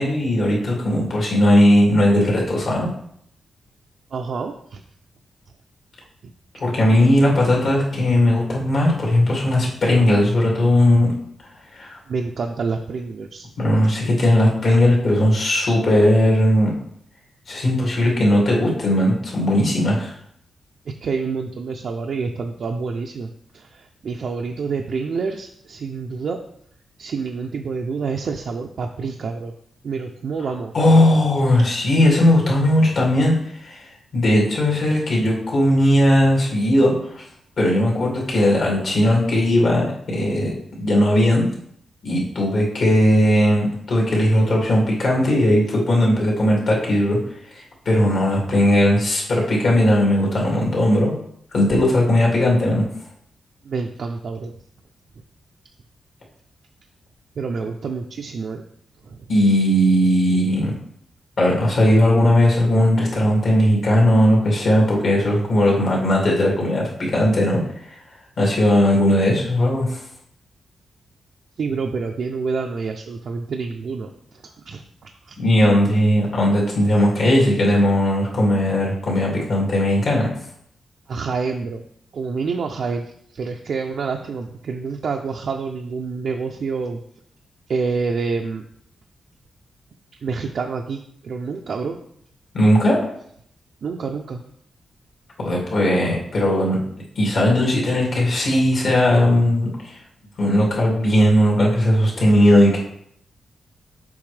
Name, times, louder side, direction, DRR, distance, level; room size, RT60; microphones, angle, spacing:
voice 1, 0.0-2.9 6.6-11.1 11.7-12.0 13.6-16.7 17.5-20.1 30.7-37.2 37.6-41.5 42.0-47.2 47.5-51.1 51.5-52.9 59.3-60.7 61.4-68.0 68.4-70.0 75.4-80.3 92.5-93.1 95.4-96.8 97.2-100.0 100.4-102.8, left 1 dB, 60° left, -2 dB, 2.3 m, -18 dB
voice 2, 4.1-4.8 6.2-6.3 12.1-13.5 14.7-14.8 21.0-26.4 27.0-29.5 29.8-30.7 31.5-31.7 53.6-54.5 57.4-58.6 59.0-59.3 71.6-75.4 81.1-81.8 82.1-87.0 87.7-88.6 90.2-92.0 93.8-94.4, right 4 dB, 60° right, 2 dB, 0.4 m, -28 dB
7.1 x 5.1 x 3.3 m, 0.69 s
wide cardioid pair, 145°, 0 cm